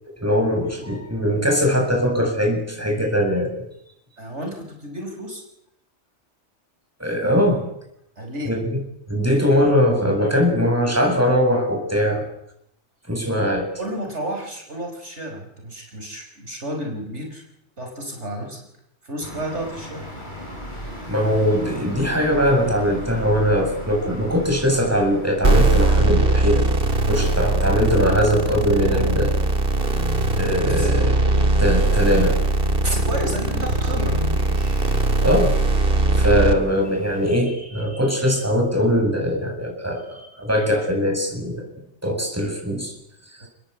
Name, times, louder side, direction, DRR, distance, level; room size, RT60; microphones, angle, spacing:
voice 1, 0.2-3.5 7.0-7.6 8.5-8.7 9.1-12.2 13.1-13.7 21.1-26.6 27.1-29.3 30.4-32.3 35.2-35.5 36.2-41.6 42.0-42.9, equal, 10° right, 2 dB, 7.8 m, -21 dB
voice 2, 4.2-5.4 8.2-8.6 13.8-17.4 17.8-18.6 19.0-20.1 28.8-29.2 29.6-30.9 32.8-34.8 43.4-43.5, equal, 70° right, 2 dB, 5.6 m, -31 dB
sound 1, 19.2-37.4, equal, 40° left, 7.9 m, -38 dB
sound 2, 25.4-36.5, right 2 dB, 50° right, 2.6 m, -20 dB
29.5 x 20.5 x 8.4 m, 0.79 s
omnidirectional pair, 1.2 m